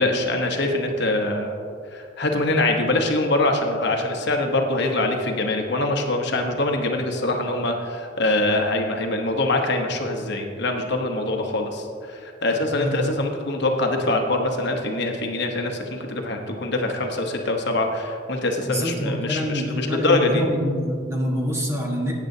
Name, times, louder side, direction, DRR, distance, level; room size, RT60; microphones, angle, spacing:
voice 1, 0.0-1.5 1.9-20.4, left 2 dB, 60° left, 3 dB, 1.0 m, -24 dB
voice 2, 18.6-22.1, equal, 15° right, -2 dB, 1.4 m, -26 dB
14.5 x 9.1 x 2.7 m, 2.4 s
head